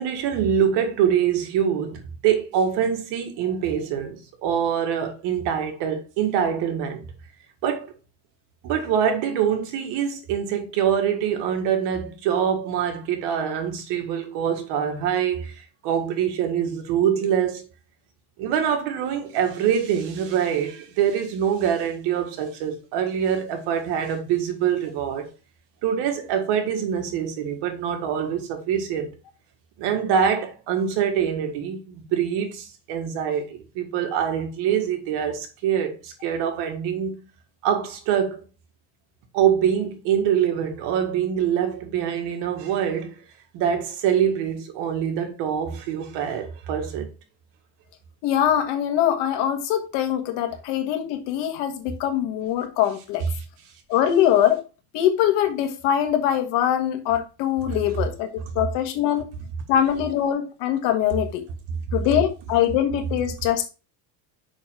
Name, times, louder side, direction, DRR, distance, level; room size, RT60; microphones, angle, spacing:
voice 1, 0.0-7.0 7.6-7.9 8.6-17.7 18.4-25.3 25.8-29.1 29.8-37.2 37.6-38.4 39.3-43.2 43.5-47.1 57.7-57.8, right 8 dB, 75° right, 1.9 m, -24 dB
voice 2, 48.2-53.2 53.9-54.6 54.9-59.3 59.7-61.4 61.9-63.6, left 10 dB, 80° left, 1.6 m, -23 dB
6.2 x 5.4 x 3.8 m
cardioid pair, 140°, 42 cm